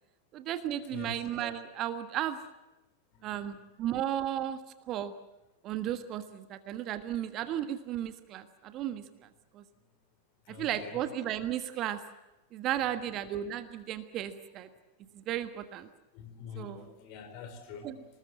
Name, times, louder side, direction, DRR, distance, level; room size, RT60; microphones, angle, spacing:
voice 1, 0.3-2.4 3.2-4.6 4.9-5.1 5.6-9.0 9.5-9.6 10.5-12.0 12.5-14.7 15.1-15.9 16.5-16.9 17.8-18.0, right 11 dB, 35° right, 11 dB, 1.5 m, -34 dB
voice 2, 10.5-11.0 13.0-13.1 16.1-18.1, left 6 dB, 45° left, 6 dB, 4.9 m, -45 dB
26.0 x 20.0 x 7.4 m, 1.0 s
figure-of-eight pair, 90°, 0 cm